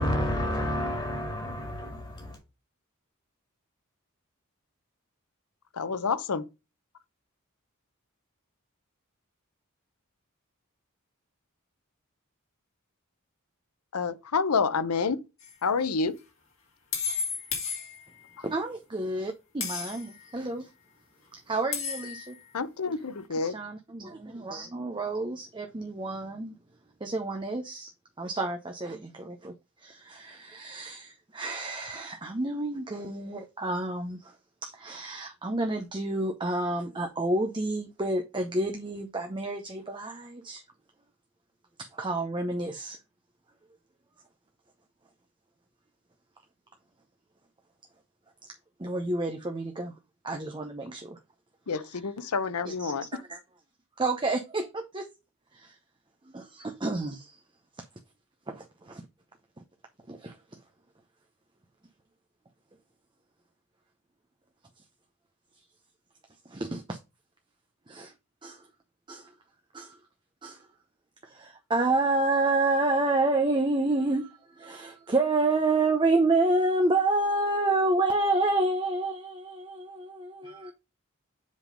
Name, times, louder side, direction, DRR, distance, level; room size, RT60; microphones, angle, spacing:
voice 1, 0.0-2.4, equal, 20° left, 2.1 m, -30 dB
voice 2, 5.7-6.4 13.9-15.2 15.6-16.2 18.4-18.5 22.5-23.5 51.7-53.2, left 5 dB, 90° left, 0.7 m, -28 dB
sound 1, 15.4-15.6 16.9-18.3 19.6-20.2 21.7-22.4, left 6 dB, 60° left, 2.6 m, -33 dB
voice 3, 18.4-20.7 21.3-22.4 23.4-26.5 27.0-27.9 28.2-29.5 29.8-34.3 34.6-40.6 41.8-43.0 48.8-49.9 50.2-51.2 51.8-52.0 52.6-53.4 54.0-55.1 55.5-55.8 56.3-57.4 58.5-59.0 60.1-60.4 66.5-67.0 67.9-68.1 68.4-68.6 69.1-69.3 69.7-70.0 70.4-70.6 71.2-80.7, right 2 dB, 20° right, 0.7 m, -29 dB
7.4 x 3.7 x 5.0 m
head